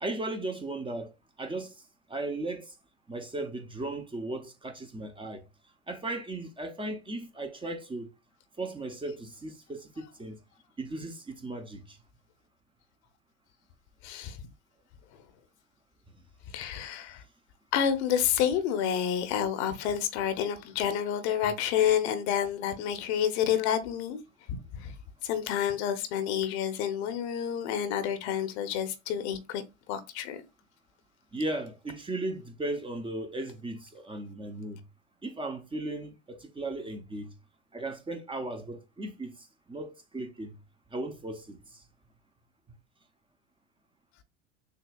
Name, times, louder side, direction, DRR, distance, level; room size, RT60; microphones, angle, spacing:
voice 1, 0.0-1.8 2.1-2.8 3.1-5.4 5.9-8.1 8.6-10.4 10.8-12.0 31.3-34.8 35.2-37.3 37.7-40.5 40.9-41.8, right 2 dB, 15° right, 0.7 m, -36 dB
voice 2, 14.0-14.4 16.5-17.2 17.7-24.2 24.7-24.9 25.2-29.6 29.9-30.4, left 9 dB, 60° left, 0.9 m, -29 dB
6.5 x 2.4 x 2.3 m
hypercardioid pair, 85°, 36 cm